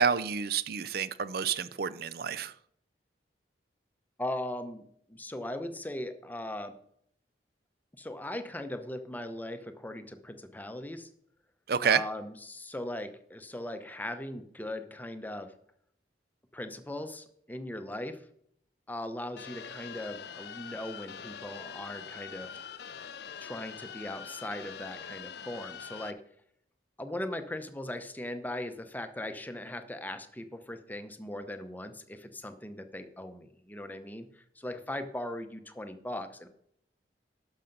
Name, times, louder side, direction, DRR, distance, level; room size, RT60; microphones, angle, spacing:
voice 1, 0.0-2.5 11.7-12.0, right 6 dB, 60° right, 16 dB, 0.5 m, -28 dB
voice 2, 4.2-6.7 8.0-11.1 11.8-15.5 16.5-18.2 18.9-22.6 23.4-26.2 27.0-36.5, left 1 dB, 10° left, 8 dB, 0.8 m, -39 dB
sound 1, 19.4-26.1, left 7 dB, 65° left, 0.5 m, -44 dB
11.5 x 6.5 x 5.3 m, 0.69 s
head